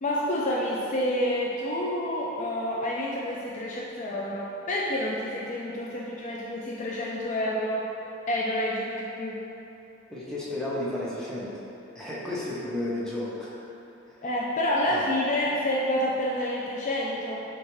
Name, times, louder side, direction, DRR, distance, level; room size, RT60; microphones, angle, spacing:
voice 1, 0.0-7.8 8.3-9.4 14.2-17.4, left 1 dB, 35° left, -5 dB, 0.3 m, -28 dB
voice 2, 10.1-11.5 11.9-13.6 14.9-15.0, left 1 dB, 5° left, -8 dB, 0.6 m, -32 dB
6.2 x 2.4 x 3.0 m, 3.0 s
head